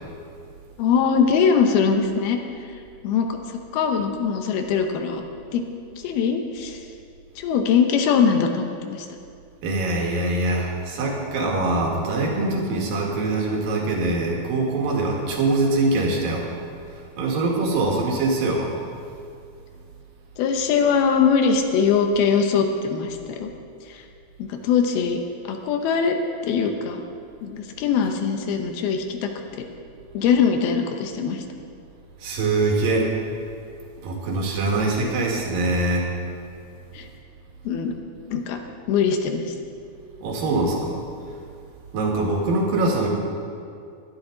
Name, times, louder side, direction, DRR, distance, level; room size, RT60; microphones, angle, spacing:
voice 1, 0.8-2.4 3.0-3.4 3.7-5.2 5.5-5.6 6.0-6.8 7.4-9.1 20.4-23.5 23.9-24.0 24.4-25.2 25.5-26.2 26.4-27.0 27.4-29.3 29.6-29.7 30.1-31.4 36.9-37.1 37.6-38.0 38.3-38.6 38.9-39.5, left 6 dB, 80° left, 5 dB, 2.8 m, -21 dB
voice 2, 9.6-16.5 17.2-18.8 32.2-33.1 34.0-36.1 40.2-41.0 41.9-43.1, right 2 dB, 65° right, -1 dB, 3.4 m, -23 dB
18.5 x 12.0 x 3.9 m, 2.4 s
omnidirectional pair, 4.5 m